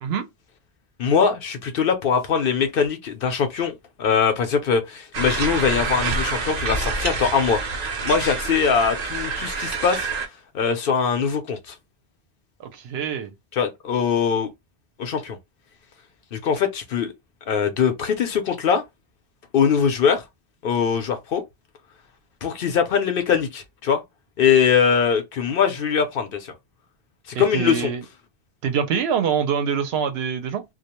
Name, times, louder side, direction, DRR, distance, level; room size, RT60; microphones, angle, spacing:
voice 1, 1.0-7.6 8.0-10.1 10.5-11.7 13.5-14.5 15.0-15.4 16.3-17.1 17.5-18.8 19.5-20.2 20.6-21.4 22.4-24.0 24.4-26.5 27.3-27.9, left 6 dB, 65° left, 0.8 m, -22 dB
sound 1, 5.1-10.3, right 4 dB, 50° right, 0.6 m, -27 dB
voice 2, 12.6-13.3 27.3-28.0 28.6-30.6, right 7 dB, 80° right, 0.8 m, -25 dB
2.3 x 2.1 x 2.9 m
omnidirectional pair, 1.1 m